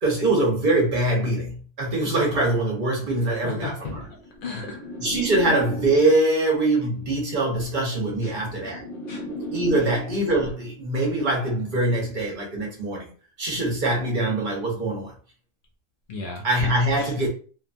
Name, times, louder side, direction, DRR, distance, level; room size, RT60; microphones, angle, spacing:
voice 1, 0.0-4.1 5.0-8.8 9.5-13.1 13.4-15.1 16.4-17.3, right 2 dB, 40° right, 0.8 m, -23 dB
voice 2, 3.4-4.8 8.2-8.3 9.1-9.2 16.1-16.4 17.0-17.1, left 3 dB, 85° left, 0.4 m, -34 dB
sound 1, 3.8-6.4 7.4-10.4 11.4-11.8, equal, 50° left, 0.8 m, -36 dB
2.7 x 2.2 x 2.5 m
omnidirectional pair, 1.5 m